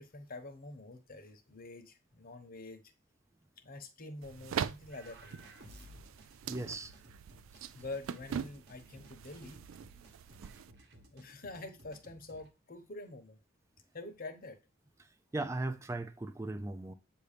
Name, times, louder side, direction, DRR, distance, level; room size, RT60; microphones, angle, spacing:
voice 1, 0.0-2.8 3.6-5.5 7.7-9.6 11.1-13.4 13.9-14.6, left 2 dB, 45° left, 0.9 m, -46 dB
sound 1, 4.2-10.7, right 8 dB, 80° right, 0.3 m, -42 dB
sound 2, 4.9-12.5, right 1 dB, 50° right, 1.1 m, -58 dB
voice 2, 6.5-6.9 15.3-16.9, right 2 dB, 15° right, 0.4 m, -37 dB
7.9 x 2.7 x 5.0 m
head